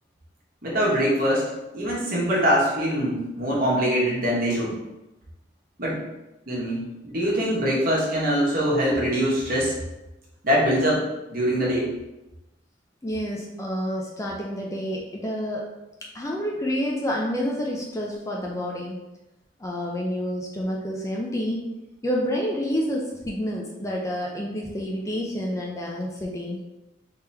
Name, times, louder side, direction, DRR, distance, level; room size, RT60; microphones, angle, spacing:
voice 1, 0.6-1.4 1.7-4.8 5.8-6.0 6.5-9.7 10.4-11.0 11.3-11.9, equal, 50° right, -5 dB, 1.2 m, -23 dB
voice 2, 13.0-15.7 16.1-19.0 19.6-21.7 22.0-26.6, equal, 15° left, -2 dB, 0.4 m, -28 dB
3.4 x 2.9 x 3.4 m, 0.99 s
head